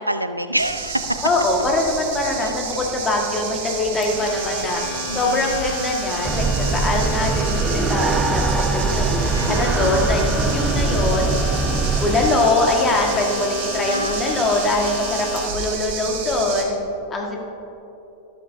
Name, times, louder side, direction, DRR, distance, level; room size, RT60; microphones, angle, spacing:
voice 1, 0.0-1.2 2.4-2.5 5.1-5.6 9.3-10.6 13.9-14.2, right 1 dB, 85° right, 10 dB, 0.4 m, -27 dB
sound 1, 0.6-16.6, right 5 dB, 50° right, 1.7 m, -31 dB
voice 2, 1.2-4.8 5.1-6.4 6.7-11.3 11.9-16.8 17.1-17.4, left 2 dB, 20° left, 0 dB, 1.7 m, -22 dB
Domestic sounds home sounds, 4.0-15.7, left 6 dB, 40° left, 1.3 m, -34 dB
sound 2, 6.2-12.3, right 3 dB, 20° right, 0.7 m, -22 dB
13.5 x 12.5 x 2.8 m, 3.0 s
figure-of-eight pair, 90°, 0 cm